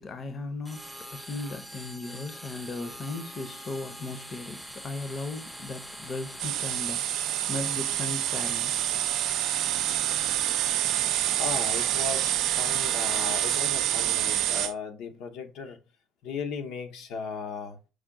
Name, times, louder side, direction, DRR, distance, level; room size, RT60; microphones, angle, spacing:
voice 1, 0.0-8.8, left 3 dB, 35° left, 0.7 m, -37 dB
sound 1, 0.6-13.6, equal, ahead, 0.5 m, -43 dB
sound 2, 6.4-14.7, right 12 dB, 70° right, 0.3 m, -27 dB
voice 2, 11.4-15.8 16.2-17.8, left 5 dB, 75° left, 0.7 m, -36 dB
4.8 x 2.2 x 3.6 m
cardioid pair, 115°, 0 cm